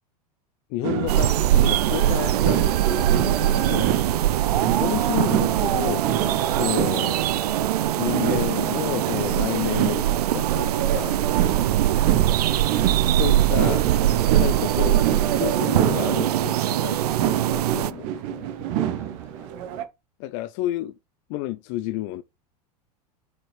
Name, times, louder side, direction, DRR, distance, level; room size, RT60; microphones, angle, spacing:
voice 1, 0.7-3.9 4.8-6.1 6.6-7.2 8.0-11.2 13.1-14.0 14.4-17.0 17.3-18.5 20.2-20.9 21.3-22.2, left 16 dB, 45° left, 0.4 m, -30 dB
sound 1, 0.8-19.8, right 10 dB, 50° right, 0.9 m, -28 dB
sound 2, 1.1-17.9, right 12 dB, 70° right, 0.4 m, -22 dB
voice 2, 18.7-19.5, right 3 dB, 15° right, 2.7 m, -51 dB
5.6 x 5.5 x 3.1 m
figure-of-eight pair, 90°, 20 cm